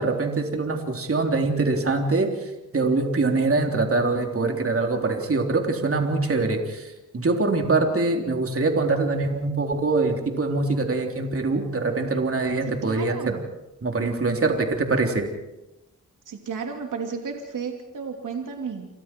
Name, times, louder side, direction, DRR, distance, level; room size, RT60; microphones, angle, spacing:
voice 1, 0.0-2.3 2.7-13.2 13.8-15.3, right 3 dB, 45° right, 3 dB, 3.5 m, -23 dB
voice 2, 12.7-13.4 16.3-18.9, right 5 dB, 70° right, 2 dB, 2.9 m, -33 dB
29.0 x 24.5 x 4.6 m, 0.98 s
cardioid pair, 65°, 32 cm